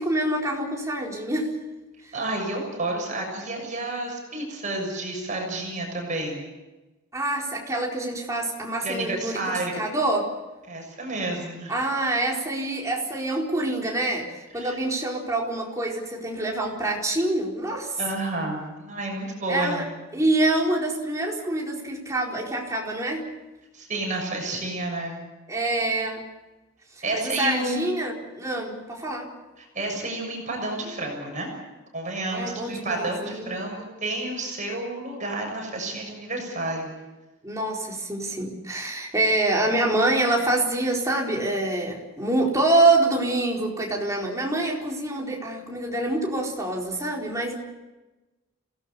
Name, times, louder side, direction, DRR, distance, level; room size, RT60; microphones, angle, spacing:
voice 1, 0.0-1.6 7.1-10.3 11.7-18.0 19.5-19.8 20.1-23.3 25.5-26.2 27.1-29.3 32.3-33.5 37.4-47.5, right 2 dB, 15° right, -1 dB, 4.4 m, -26 dB
voice 2, 2.1-6.4 8.8-9.8 10.7-11.9 14.6-14.8 18.0-19.9 23.7-25.2 27.0-27.9 29.6-31.5 31.9-33.7 34.0-36.9, right 2 dB, 35° right, 1 dB, 6.8 m, -30 dB
27.5 x 18.0 x 7.1 m, 1.1 s
head